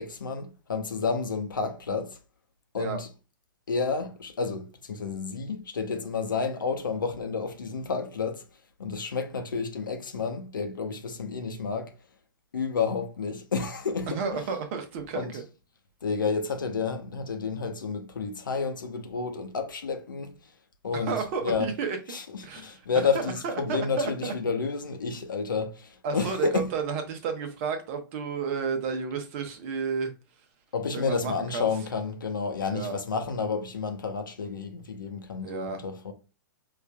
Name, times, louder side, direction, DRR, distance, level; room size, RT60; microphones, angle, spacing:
voice 1, 0.0-2.2 2.7-3.1 3.7-8.4 8.8-11.9 12.5-14.2 15.1-15.3 16.0-20.3 20.8-21.1 21.4-21.7 22.1-26.7 30.7-36.1, left 5 dB, 70° left, 0.7 m, -30 dB
voice 2, 14.1-15.4 20.9-22.0 22.4-24.3 26.0-30.1 30.9-31.7 32.7-33.0 35.4-35.8, right 5 dB, 40° right, 0.8 m, -32 dB
5.5 x 2.4 x 2.3 m
figure-of-eight pair, 110°, 11 cm